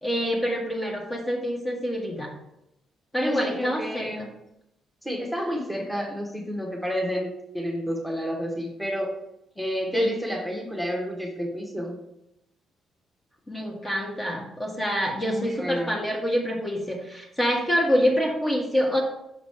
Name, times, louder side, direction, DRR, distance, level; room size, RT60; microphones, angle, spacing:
voice 1, 0.0-2.3 3.1-4.3 9.9-10.1 13.5-19.0, equal, 20° left, 0 dB, 1.4 m, -26 dB
voice 2, 3.2-4.3 5.0-7.3 7.5-9.1 9.6-12.0 15.2-16.0, equal, ahead, -1 dB, 1.4 m, -30 dB
6.4 x 3.9 x 4.8 m, 0.83 s
cardioid pair, 90°, 0 cm